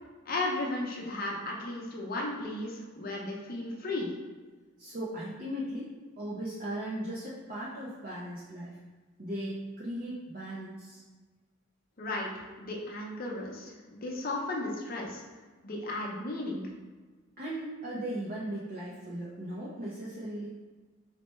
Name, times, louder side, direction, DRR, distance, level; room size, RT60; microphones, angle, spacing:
voice 1, 0.3-4.1 12.0-12.3 12.6-15.2 15.6-16.6, left 2 dB, 45° left, -2 dB, 0.6 m, -35 dB
voice 2, 4.8-8.8 9.2-11.0 17.4-20.5, right 1 dB, 45° right, -7 dB, 0.5 m, -37 dB
4.3 x 2.2 x 3.0 m, 1.4 s
head